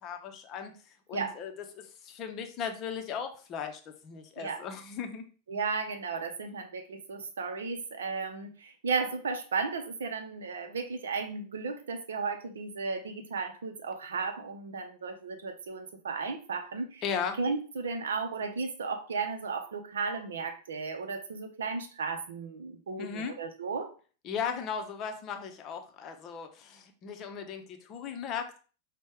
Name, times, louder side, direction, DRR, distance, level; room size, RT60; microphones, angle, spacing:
voice 1, 0.0-0.7 1.1-1.5 1.8-5.2 17.0-17.4 23.0-23.3 24.2-28.6, left 7 dB, 35° left, 5 dB, 0.6 m, -37 dB
voice 2, 5.5-17.0 17.4-23.9, right 4 dB, 65° right, 6 dB, 0.6 m, -34 dB
5.1 x 2.2 x 3.5 m, 0.38 s
figure-of-eight pair, 90°, 0 cm